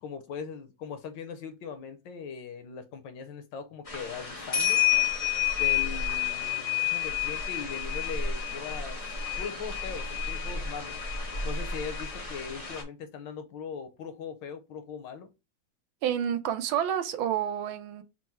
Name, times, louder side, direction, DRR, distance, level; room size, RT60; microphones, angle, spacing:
voice 1, 0.0-4.8 5.6-9.0 9.4-11.0 11.4-15.3, left 6 dB, 70° left, 1.2 m, -40 dB
sound 1, 3.9-12.8, left 9 dB, 45° left, 0.4 m, -30 dB
voice 2, 16.0-18.0, right 9 dB, 90° right, 1.5 m, -29 dB
4.5 x 2.1 x 4.2 m
omnidirectional pair, 2.2 m